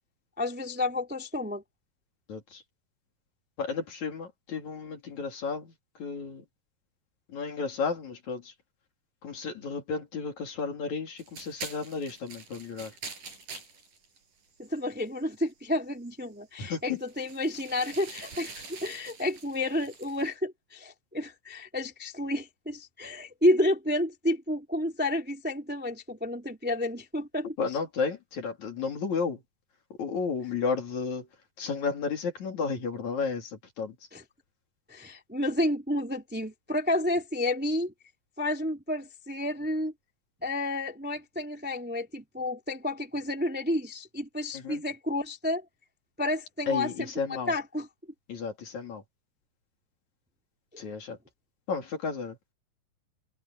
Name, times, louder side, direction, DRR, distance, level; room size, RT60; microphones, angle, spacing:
voice 1, 0.4-1.6 14.6-27.5 34.1-34.2 34.9-37.9 38.4-39.9 40.4-45.6 46.2-47.1 47.5-47.9, left 1 dB, 5° right, 2.1 m, -30 dB
voice 2, 2.3-2.6 3.6-5.7 6.0-6.4 7.3-8.5 9.2-12.9 16.6-17.0 27.6-29.4 30.0-31.3 31.6-34.0 44.5-44.8 46.7-47.5 48.3-49.0 50.8-51.2 51.7-52.4, left 5 dB, 55° left, 4.2 m, -33 dB
sound 1, 11.2-15.5 16.1-16.3 16.6-20.3, right 4 dB, 65° right, 8.0 m, -45 dB
omnidirectional pair, 4.1 m